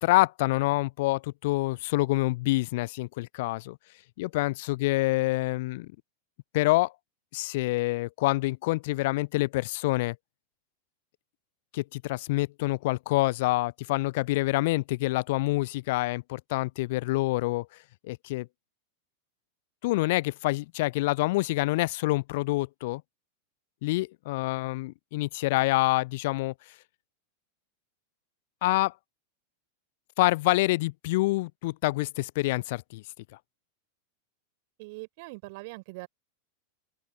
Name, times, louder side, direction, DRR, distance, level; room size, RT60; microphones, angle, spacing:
voice 1, 0.0-3.8 4.2-5.9 6.5-6.9 7.3-10.2 11.7-17.7 18.0-18.5 19.8-23.0 23.8-26.5 28.6-28.9 30.2-33.0, left 20 dB, 50° left, 0.4 m, -27 dB
voice 2, 34.8-36.1, right 26 dB, 50° right, 4.4 m, -42 dB
figure-of-eight pair, 90°, 0 cm